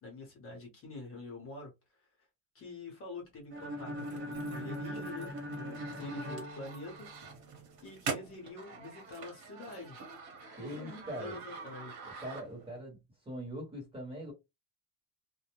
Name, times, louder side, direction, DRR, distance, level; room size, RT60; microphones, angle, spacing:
voice 1, 0.0-2.1 2.5-7.1 7.8-10.0 10.6-12.0, left 3 dB, 30° left, 0.9 m, -46 dB
sound 1, 3.5-7.4, equal, 30° right, 0.6 m, -41 dB
sound 2, 4.0-12.8, right 5 dB, 55° right, 1.1 m, -45 dB
voice 2, 10.5-11.4 12.2-14.3, equal, 10° right, 1.0 m, -42 dB
2.2 x 2.1 x 2.9 m
cardioid pair, 160°, 43 cm